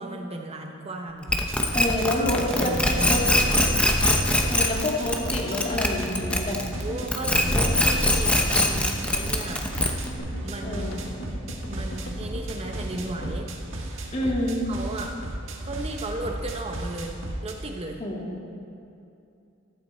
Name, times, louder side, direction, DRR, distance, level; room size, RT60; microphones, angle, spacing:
voice 1, 0.0-1.4 2.4-3.6 6.8-9.7 10.4-11.1 11.7-13.5 14.0-14.3 14.6-15.2 15.6-18.0, right 2 dB, 30° right, 3 dB, 0.9 m, -36 dB
sound 1, 1.3-6.8 7.1-10.2, left 1 dB, 5° left, 0.9 m, -22 dB
sound 2, 1.3-17.5, right 1 dB, 80° right, 1.5 m, -35 dB
voice 2, 1.7-2.7 3.0-3.2 4.5-6.6 7.5-7.6 10.6-11.0 14.1-14.6 18.0-18.5, left 1 dB, 35° left, -2 dB, 2.0 m, -28 dB
sound 3, 2.3-14.5 14.8-14.9 15.0-15.1, left 1 dB, 70° left, 1.3 m, -39 dB
14.5 x 12.0 x 4.3 m, 2.7 s
head